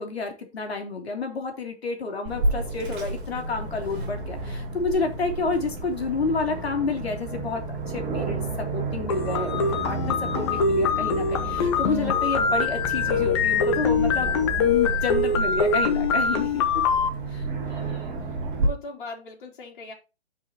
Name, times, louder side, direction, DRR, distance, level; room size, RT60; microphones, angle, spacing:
voice 1, 0.0-16.6 17.3-17.5, left 4 dB, 65° left, 3.1 m, -30 dB
Aircraft, 2.2-18.7, right 2 dB, 15° right, 3.0 m, -31 dB
sound 1, 9.1-17.1, left 5 dB, 25° left, 0.9 m, -24 dB
voice 2, 17.7-19.9, left 2 dB, 50° left, 3.7 m, -41 dB
11.0 x 5.6 x 3.0 m
hypercardioid pair, 150°, 33 cm